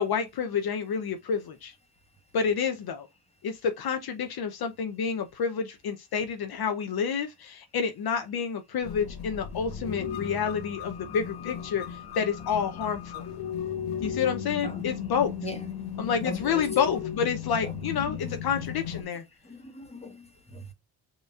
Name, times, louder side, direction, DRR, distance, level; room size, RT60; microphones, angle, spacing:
voice 1, 0.0-1.7 2.3-3.1 3.4-13.2 14.0-15.3 16.0-19.2, left 6 dB, 55° left, 0.8 m, -29 dB
sound 1, 8.8-19.0, left 8 dB, 80° left, 1.2 m, -36 dB
voice 2, 14.6-15.0 15.4-15.6 16.2-16.7 17.6-17.7 18.2-18.4 19.4-20.7, left 2 dB, 15° left, 1.5 m, -39 dB
5.5 x 3.0 x 2.4 m
cardioid pair, 70°, 44 cm